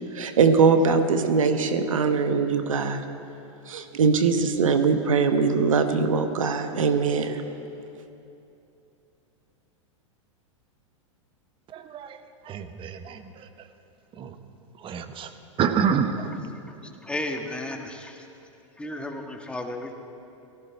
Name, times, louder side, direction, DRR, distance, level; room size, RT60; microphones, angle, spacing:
voice 1, 0.1-3.0 3.7-7.4, right 5 dB, 85° right, 8 dB, 1.2 m, -22 dB
voice 2, 11.7-13.7 14.1-14.4 14.8-15.3 15.6-16.3, right 7 dB, 30° right, 9 dB, 1.1 m, -28 dB
voice 3, 17.0-18.2 18.8-19.9, left 1 dB, 5° left, 3 dB, 1.5 m, -33 dB
18.5 x 14.5 x 4.5 m, 2.7 s
hypercardioid pair, 105°, 17 cm